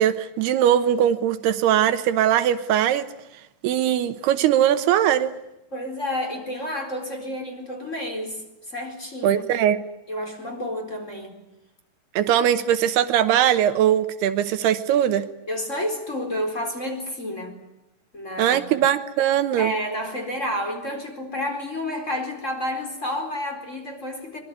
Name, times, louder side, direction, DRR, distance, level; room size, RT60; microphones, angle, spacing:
voice 1, 0.0-3.1 3.6-5.3 9.2-9.8 12.2-15.2 18.4-19.7, right 10 dB, 80° right, 11 dB, 3.1 m, -20 dB
voice 2, 5.7-8.4 8.7-9.4 10.1-11.4 15.5-17.5 18.1-18.6 19.6-24.4, left 1 dB, 20° left, 4 dB, 4.3 m, -30 dB
24.0 x 22.0 x 9.7 m, 0.90 s
omnidirectional pair, 4.7 m